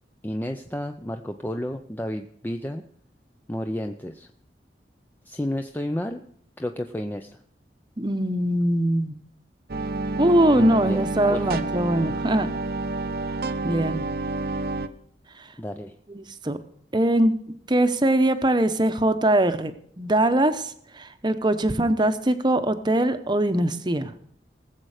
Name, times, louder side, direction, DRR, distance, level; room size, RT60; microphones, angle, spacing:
voice 1, 0.2-2.8 3.5-4.3 5.3-6.2 6.6-7.4 10.5-11.4 15.6-15.9, left 1 dB, 10° left, 5 dB, 0.5 m, -31 dB
voice 2, 8.0-9.2 10.2-12.5 13.6-14.0 16.1-16.6 16.9-17.4 17.7-24.1, right 1 dB, 25° right, 10 dB, 0.8 m, -22 dB
sound 1, 9.7-14.9, right 2 dB, 55° right, 0.7 m, -29 dB
19.5 x 7.6 x 4.9 m, 0.65 s
head